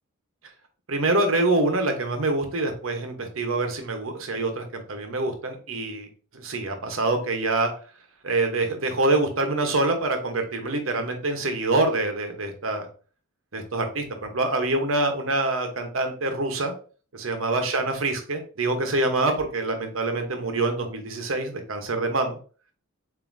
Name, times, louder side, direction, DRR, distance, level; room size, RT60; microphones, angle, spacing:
voice 1, 0.9-6.1 6.3-7.7 8.2-12.9 13.5-16.7 17.1-22.4, right 2 dB, 70° right, 5 dB, 1.0 m, -25 dB
7.1 x 2.7 x 2.6 m, 0.39 s
head